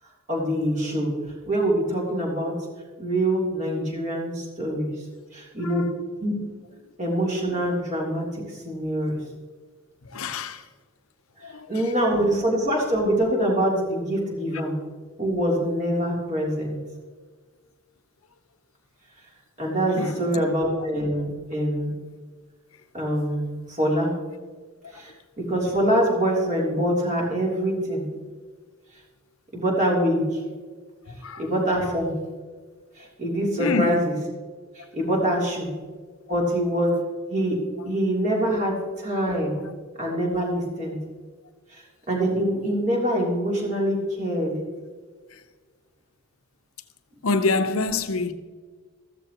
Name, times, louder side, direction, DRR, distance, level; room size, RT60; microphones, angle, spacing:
voice 1, 0.3-1.1 1.5-2.5 3.0-4.9 5.3-5.8 6.2-6.3 7.0-9.2 11.7-14.7 15.2-16.8 19.6-21.9 22.9-24.1 24.9-25.1 25.4-28.1 29.5-30.4 31.4-32.1 33.0-34.1 34.8-35.7 36.3-37.0 37.3-37.6 37.9-39.6 40.0-41.0 41.7-41.8 42.1-44.5, right 1 dB, 35° right, 3.3 m, -24 dB
voice 2, 10.1-10.6 11.4-11.8 20.0-20.4 31.2-31.4 33.6-34.0 47.2-48.3, left 3 dB, 75° left, 0.8 m, -26 dB
14.5 x 14.0 x 3.0 m
head